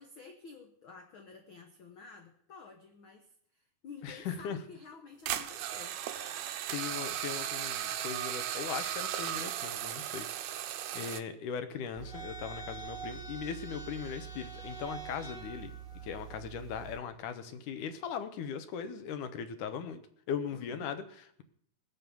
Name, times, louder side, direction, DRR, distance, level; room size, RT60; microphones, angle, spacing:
voice 1, 0.0-6.0 20.5-20.9, left 4 dB, 90° left, 5 dB, 1.1 m, -51 dB
voice 2, 4.0-4.6 6.1-10.3 10.7-15.8 16.0-20.0 20.3-21.4, left 7 dB, 70° left, 10 dB, 2.4 m, -39 dB
sound 1, 5.3-11.2, right 11 dB, 80° right, 1.6 m, -36 dB
sound 2, 12.0-17.0, right 6 dB, 15° right, 1.3 m, -44 dB
18.5 x 7.8 x 7.0 m, 0.67 s
omnidirectional pair, 4.0 m